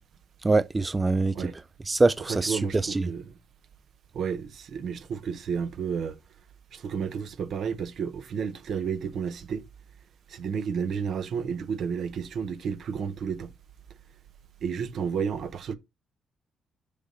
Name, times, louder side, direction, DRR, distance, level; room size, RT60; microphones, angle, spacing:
voice 1, 0.4-1.5 1.9-3.1, right 3 dB, 25° right, 0.4 m, -24 dB
voice 2, 2.3-3.3 4.1-6.2 6.7-9.6 10.3-13.5 14.6-15.7, right 6 dB, 65° right, 0.9 m, -31 dB
6.7 x 4.0 x 5.4 m
cardioid pair, 75°, 0 cm